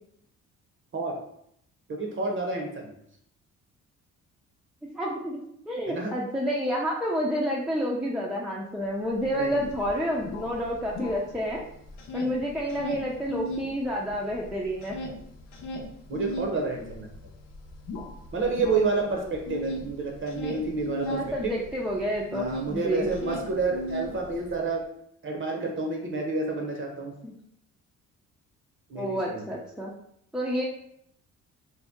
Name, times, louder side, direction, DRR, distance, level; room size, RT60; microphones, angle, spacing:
voice 1, 1.9-2.9 5.9-6.1 9.3-9.7 16.1-17.1 18.3-21.5 22.3-24.8 25.2-27.1 28.9-29.5, right 3 dB, 40° right, 1 dB, 0.7 m, -29 dB
voice 2, 4.9-5.4 5.7-11.6 12.1-15.0 19.1-19.2 21.1-23.1 27.2-27.3 29.0-29.9 30.3-30.6, equal, ahead, -3 dB, 0.4 m, -29 dB
sound 1, 9.2-9.3 9.6-11.6 11.9-13.7 14.1-22.7 23.0-24.6, equal, 85° left, 0.7 m, -36 dB
2.7 x 2.1 x 3.4 m, 0.71 s
cardioid pair, 90°, 30 cm